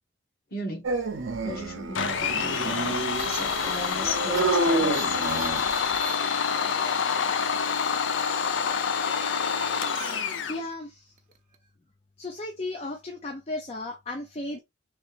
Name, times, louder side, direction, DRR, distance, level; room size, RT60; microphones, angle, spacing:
voice 1, 0.5-1.0 1.4-5.2 8.4-8.5, left 1 dB, 50° left, 1.2 m, -36 dB
Dog, 0.8-5.9, right 3 dB, 85° right, 0.7 m, -29 dB
Domestic sounds home sounds, 1.9-10.6, left 6 dB, 75° left, 0.6 m, -27 dB
sound 1, 3.1-6.6 10.0-10.2 10.5-10.7 11.2-11.5, right 7 dB, 40° right, 0.6 m, -40 dB
voice 2, 10.5-11.1 12.2-14.6, left 2 dB, 30° left, 0.5 m, -35 dB
3.4 x 3.2 x 3.3 m
head